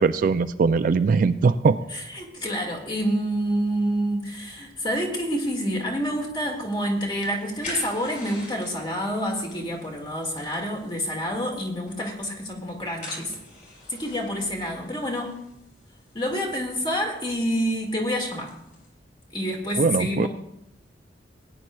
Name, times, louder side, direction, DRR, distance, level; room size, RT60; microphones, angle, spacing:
voice 1, 0.0-1.8 19.8-20.3, right 4 dB, 50° right, 11 dB, 0.3 m, -20 dB
voice 2, 1.9-13.4 13.9-15.3 16.1-18.6 19.3-20.3, equal, 25° left, 1 dB, 1.9 m, -28 dB
sound 1, 6.5-18.9, left 1 dB, 45° left, 4.3 m, -46 dB
18.5 x 9.8 x 2.3 m, 0.82 s
head